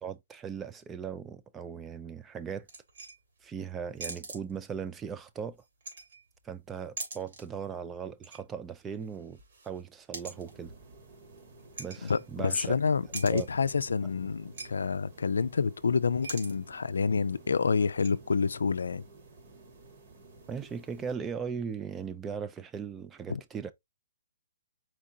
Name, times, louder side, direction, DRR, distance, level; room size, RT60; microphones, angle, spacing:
voice 1, 0.0-2.7 3.4-5.6 6.4-9.4 9.6-10.7 11.8-12.8 13.3-13.5 20.5-23.7, right 7 dB, 10° right, 0.3 m, -38 dB
sound 1, 2.7-3.4 3.9-4.9 5.6-6.5 6.8-7.6 7.9-8.5 8.8-12.7 12.9-13.6 14.1-14.2 14.4-14.7 14.9-15.0 15.3-15.7 16.1-16.6 16.9-17.0 17.5-18.2, right 3 dB, 60° right, 2.1 m, -44 dB
sound 2, 10.2-21.2, right 3 dB, 40° right, 1.4 m, -54 dB
voice 2, 12.0-19.0 23.3-23.4, left 5 dB, 85° left, 0.4 m, -28 dB
4.5 x 3.7 x 2.7 m
hypercardioid pair, 155°, 0 cm